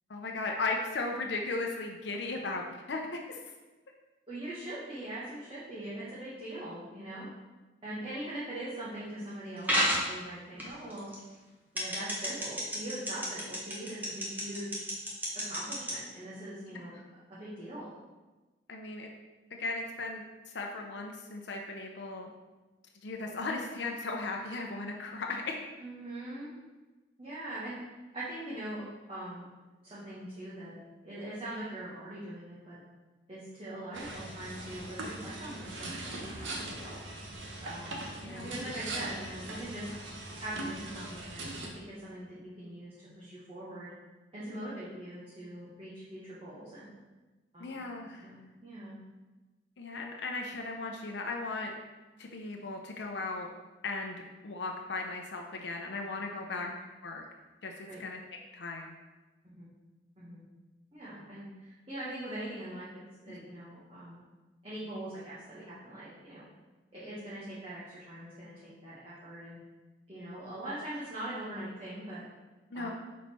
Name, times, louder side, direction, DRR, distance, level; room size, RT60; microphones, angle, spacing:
voice 1, 0.1-3.4 16.9-17.0 18.7-19.1 19.6-20.2 20.5-22.3 23.0-25.6 38.2-38.5 47.6-48.3 49.8-51.7 52.2-53.5 53.8-54.2 54.4-56.7 57.0-57.2 57.6-58.2 58.5-58.9 63.3-63.4 72.7-72.9, left 3 dB, 65° left, 1 dB, 0.7 m, -36 dB
voice 2, 4.3-7.3 7.8-11.1 11.7-14.8 15.4-16.9 17.4-17.9 25.8-26.5 27.2-27.8 28.1-29.4 29.8-30.8 31.0-32.8 33.3-37.0 37.6-39.9 40.4-43.9 44.3-46.9 47.5-47.8 48.1-49.0 56.4-56.6 57.9-58.0 59.5-59.7 60.2-60.4 60.9-62.9 63.2-64.2 64.6-66.4 66.9-69.6 70.1-72.2 72.7-72.9, right 1 dB, 30° right, -10 dB, 1.4 m, -42 dB
sound 1, 9.7-10.1 10.6-11.2 11.8-15.9, equal, 10° right, 1.1 m, -30 dB
sound 2, 33.9-41.7, right 2 dB, 80° right, 1.0 m, -41 dB
6.3 x 4.1 x 4.3 m, 1.2 s
head